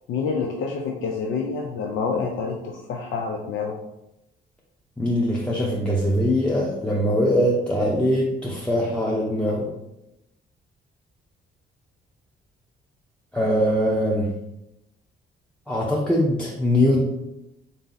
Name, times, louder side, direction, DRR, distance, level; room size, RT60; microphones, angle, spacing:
voice 1, 0.1-3.8, left 5 dB, 75° left, 1 dB, 0.5 m, -27 dB
voice 2, 5.0-9.7 13.3-14.3 15.7-17.0, equal, 5° left, -4 dB, 0.6 m, -22 dB
3.5 x 2.7 x 3.9 m, 0.89 s
cardioid pair, 90°, 20 cm